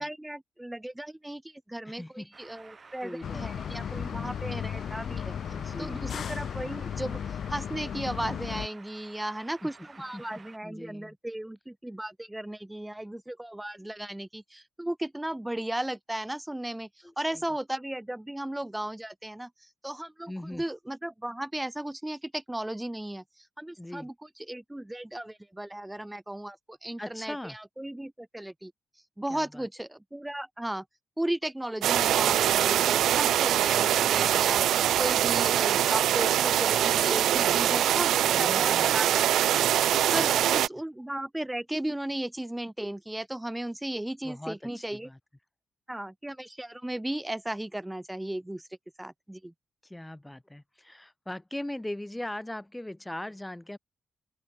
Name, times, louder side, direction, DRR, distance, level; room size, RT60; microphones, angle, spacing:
voice 1, 0.0-5.4 5.8-7.2 7.5-16.9 17.2-19.5 19.8-23.2 23.6-24.1 24.5-28.7 29.2-30.8 31.2-39.7 40.1-45.1 45.9-48.6 49.0-49.5, right 1 dB, 10° right, 4.3 m, -35 dB
voice 2, 1.8-2.3 3.0-3.7 3.9-4.4 5.5-6.0 9.6-9.7 10.1-11.2 17.0-17.4 20.3-20.6 23.8-24.1 27.0-27.6 29.3-29.7 37.4-39.1 40.2-40.6 44.2-45.2 49.8-53.8, left 1 dB, 10° left, 4.1 m, -40 dB
sound 1, 2.3-10.6, right 4 dB, 45° right, 7.2 m, -52 dB
sound 2, 3.2-8.7, left 8 dB, 70° left, 2.2 m, -35 dB
sound 3, 31.8-40.7, right 11 dB, 90° right, 0.3 m, -23 dB
open air
cardioid pair, 65°, 0 cm